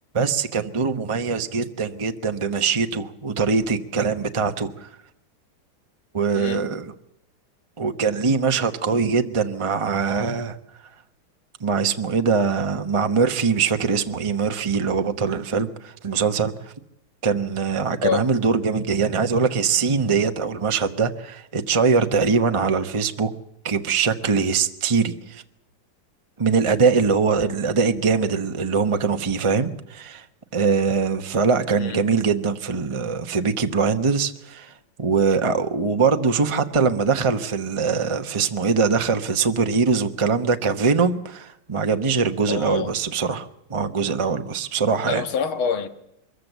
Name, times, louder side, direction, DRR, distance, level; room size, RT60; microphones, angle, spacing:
voice 1, 0.1-4.9 6.1-6.9 7.8-10.6 11.6-16.5 17.2-23.3 23.6-25.4 26.4-30.2 30.5-34.7 35.0-45.2, right 5 dB, 25° right, 0.6 m, -22 dB
voice 2, 6.3-6.7 18.0-18.2 31.8-32.0 42.5-42.9 45.1-45.9, left 6 dB, 85° left, 2.3 m, -26 dB
23.0 x 14.5 x 8.0 m
omnidirectional pair, 2.2 m